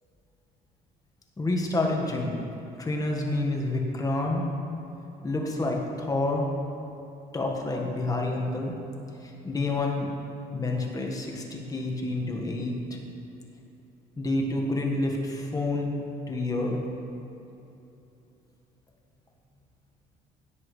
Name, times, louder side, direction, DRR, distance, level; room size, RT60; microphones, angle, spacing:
voice 1, 1.4-2.5 2.8-4.5 5.2-6.5 7.3-8.8 9.2-10.1 10.5-13.0 14.2-16.0 16.3-16.8, left 2 dB, 20° left, 0 dB, 1.6 m, -28 dB
17.0 x 7.6 x 3.3 m, 2.9 s
cardioid pair, 110°, 17 cm